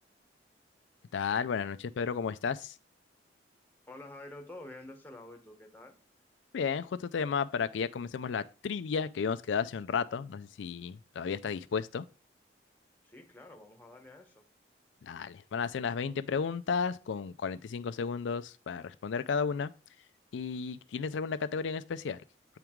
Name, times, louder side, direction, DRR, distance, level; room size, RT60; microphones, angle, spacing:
voice 1, 1.1-2.7 6.5-12.0 15.0-19.7 20.3-22.2, left 6 dB, 80° left, 0.4 m, -33 dB
voice 2, 3.9-6.0 13.0-14.4, left 2 dB, 10° left, 0.9 m, -48 dB
8.0 x 4.6 x 3.6 m
head